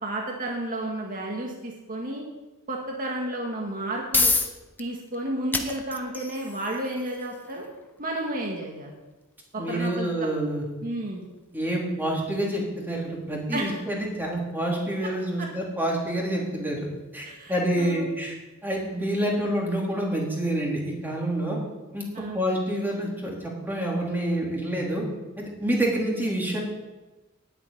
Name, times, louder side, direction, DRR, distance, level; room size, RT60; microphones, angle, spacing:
voice 1, 0.0-2.2 2.7-4.3 4.8-7.6 8.0-8.9 9.5-10.3 10.8-11.2 13.5-13.8 17.2-18.1 22.1-22.5, right 1 dB, 40° right, -1 dB, 2.0 m, -32 dB
sound 1, 3.6-18.5, left 3 dB, 10° left, 1.0 m, -35 dB
voice 2, 9.6-10.6 11.5-16.9 17.1-18.3 18.6-21.6 21.9-22.0 22.3-25.0 25.4-26.6, right 1 dB, 10° right, -3 dB, 3.7 m, -27 dB
10.0 x 8.9 x 9.8 m, 1.1 s
head